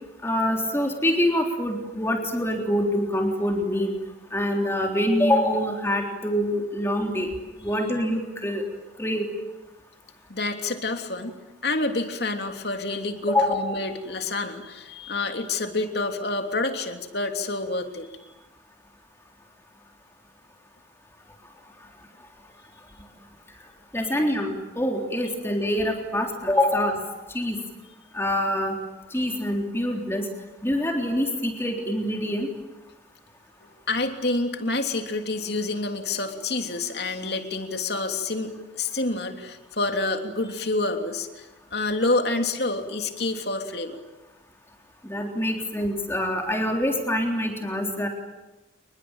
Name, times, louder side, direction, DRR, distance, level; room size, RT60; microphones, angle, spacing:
voice 1, 0.2-3.9 4.3-7.3 7.6-8.6 9.0-9.3 13.3-13.6 23.9-27.0 27.3-27.6 28.1-28.7 29.1-30.3 30.6-32.5 45.0-48.1, left 1 dB, 15° left, 2 dB, 3.6 m, -25 dB
voice 2, 10.3-18.3 33.9-44.0, left 2 dB, 55° left, 5 dB, 3.2 m, -28 dB
29.5 x 22.0 x 9.0 m, 1.1 s
head